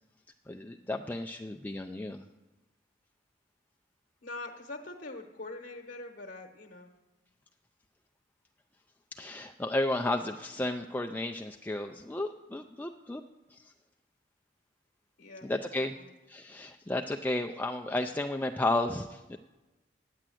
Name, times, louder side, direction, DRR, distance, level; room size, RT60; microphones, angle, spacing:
voice 1, 0.5-2.2 9.1-13.2 13.5-13.7 15.4-16.0 16.3-19.4, left 2 dB, 10° left, 4 dB, 0.4 m, -33 dB
voice 2, 4.2-6.9 15.2-15.5 15.8-16.0, left 2 dB, 65° left, 2 dB, 1.0 m, -43 dB
9.9 x 8.5 x 7.7 m, 1.1 s
head